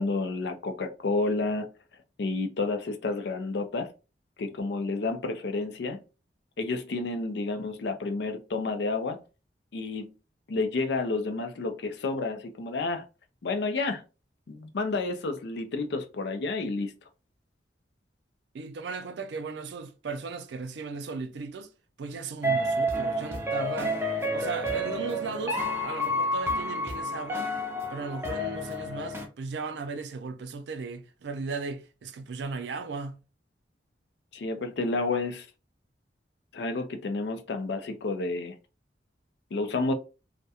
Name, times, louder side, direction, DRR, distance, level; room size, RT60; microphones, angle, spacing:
voice 1, 0.0-1.7 2.2-3.9 4.4-6.0 6.6-9.2 9.7-10.1 10.5-13.0 13.4-14.0 14.5-16.9 34.3-35.5 36.5-38.5 39.5-39.9, left 3 dB, 70° left, 0.4 m, -30 dB
voice 2, 18.5-21.7 22.0-24.0 24.3-27.5 27.9-33.2, right 4 dB, 75° right, 0.4 m, -36 dB
sound 1, 22.4-29.3, equal, 15° right, 0.5 m, -30 dB
2.3 x 2.1 x 2.7 m
head